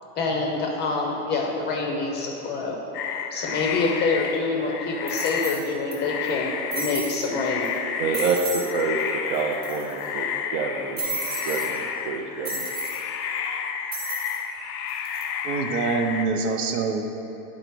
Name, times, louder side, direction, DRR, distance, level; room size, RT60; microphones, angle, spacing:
voice 1, 0.2-2.8 3.3-7.7, left 3 dB, 20° left, 0 dB, 0.6 m, -26 dB
sound 1, 2.9-16.3, left 7 dB, 85° left, 0.7 m, -31 dB
sound 2, 4.2-4.3 5.1-5.9 6.2-6.3 6.7-7.2 7.6-7.8 8.1-8.7 9.0-9.1 9.3-10.1 11.0-11.7 12.4-13.0 13.9-14.4 14.9-15.2, right 3 dB, 20° right, 1.1 m, -33 dB
voice 2, 8.0-12.7, right 4 dB, 40° right, -1 dB, 0.4 m, -28 dB
voice 3, 15.4-17.2, right 4 dB, 70° right, 4 dB, 0.9 m, -25 dB
9.6 x 4.0 x 4.6 m, 3.0 s
supercardioid pair, 145°, 46 cm